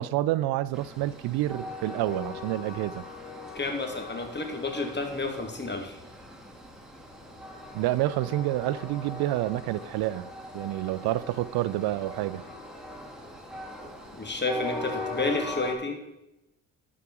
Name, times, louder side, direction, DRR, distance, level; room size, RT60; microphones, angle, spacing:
voice 1, 0.0-3.0 7.7-10.3 10.5-12.4, right 15 dB, 80° right, 17 dB, 0.5 m, -28 dB
Train, 0.7-15.7, left 2 dB, ahead, 2.1 m, -40 dB
voice 2, 3.5-6.0 14.1-16.0, left 3 dB, 30° left, 4 dB, 2.2 m, -31 dB
11.5 x 5.0 x 6.1 m, 0.95 s
supercardioid pair, 55°, 37 cm